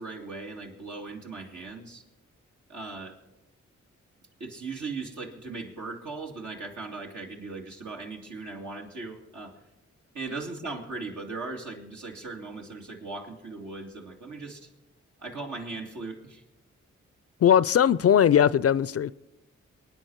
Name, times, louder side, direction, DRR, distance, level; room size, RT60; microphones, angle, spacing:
voice 1, 0.0-2.0 2.7-3.2 4.4-9.5 10.1-14.7 15.2-16.4, right 3 dB, 75° right, 2.3 m, -38 dB
voice 2, 17.4-19.1, left 9 dB, 50° left, 0.4 m, -20 dB
23.0 x 9.7 x 4.6 m
cardioid pair, 45°, 30 cm